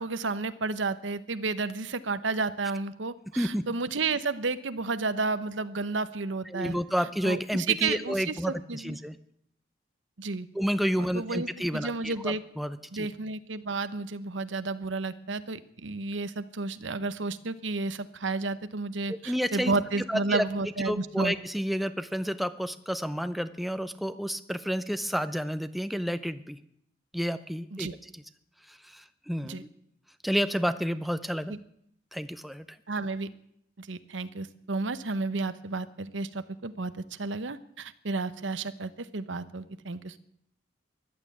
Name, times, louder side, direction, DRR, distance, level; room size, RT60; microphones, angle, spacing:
voice 1, 0.0-6.8 7.2-9.0 10.2-10.5 11.0-11.5 11.7-12.4 12.9-21.3 27.7-28.0 29.4-29.6 31.5-31.6 32.9-33.3 33.8-40.2, right 3 dB, 85° right, 13 dB, 0.9 m, -32 dB
voice 2, 6.5-9.2 10.5-13.1 19.1-19.7 20.1-20.4 20.9-26.6 27.1-28.2 28.7-29.7 30.2-31.5 32.1-32.6, equal, ahead, 11 dB, 0.6 m, -30 dB
15.0 x 11.5 x 8.5 m, 0.72 s
head